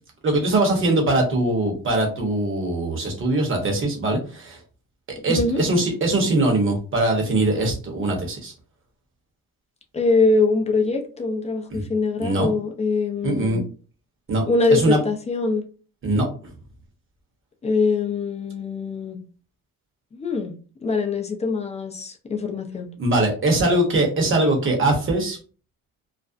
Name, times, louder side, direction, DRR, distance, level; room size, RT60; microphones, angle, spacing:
voice 1, 0.2-4.6 5.2-8.5 11.7-11.8 12.2-12.5 13.2-13.6 14.3-14.4 14.7-15.0 16.0-16.3 23.0-25.4, right 2 dB, 35° right, 2 dB, 0.9 m, -21 dB
voice 2, 5.3-5.6 9.9-13.6 14.5-15.7 17.6-19.2 20.1-20.6 20.8-22.9, left 3 dB, 20° left, 3 dB, 0.4 m, -23 dB
2.5 x 2.0 x 2.5 m, 0.38 s
cardioid pair, 105°, 34 cm